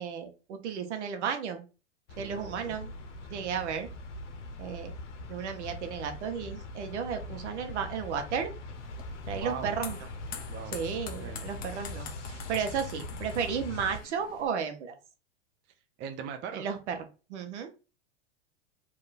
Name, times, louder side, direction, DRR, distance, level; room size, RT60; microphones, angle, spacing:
voice 1, 0.0-1.6 2.2-2.9 3.3-3.9 4.6-4.9 5.3-8.5 9.3-10.0 10.7-15.0 16.5-16.9 17.3-17.7, right 7 dB, 75° right, 6 dB, 1.1 m, -33 dB
sound 1, 2.1-14.0, left 2 dB, 90° left, 0.9 m, -41 dB
voice 2, 2.1-2.8 3.3-3.5 9.3-9.7 10.5-10.8 11.2-11.4 16.0-16.7, right 7 dB, 35° right, 6 dB, 0.6 m, -40 dB
sound 2, 8.7-14.5, left 6 dB, 25° left, 0.7 m, -46 dB
3.2 x 2.8 x 4.1 m, 0.32 s
hypercardioid pair, 115°, 35 cm